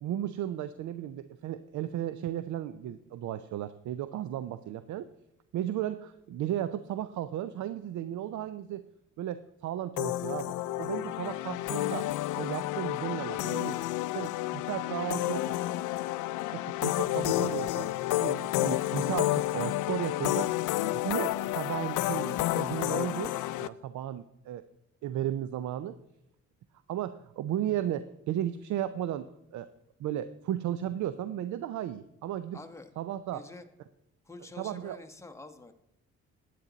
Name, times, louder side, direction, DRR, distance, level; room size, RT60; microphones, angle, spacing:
voice 1, 0.0-5.1 5.5-8.8 9.2-12.1 12.4-13.8 14.1-15.5 16.5-24.6 25.0-25.9 26.9-29.7 30.0-32.6 33.0-33.5 34.6-35.0, right 11 dB, 70° right, 13 dB, 0.6 m, -35 dB
sound 1, 10.0-23.7, left 16 dB, 80° left, 0.5 m, -30 dB
voice 2, 32.5-32.9 33.3-33.6 34.2-35.7, left 3 dB, 10° left, 6 dB, 1.1 m, -47 dB
9.8 x 9.2 x 4.0 m, 0.86 s
cardioid pair, 90°, 30 cm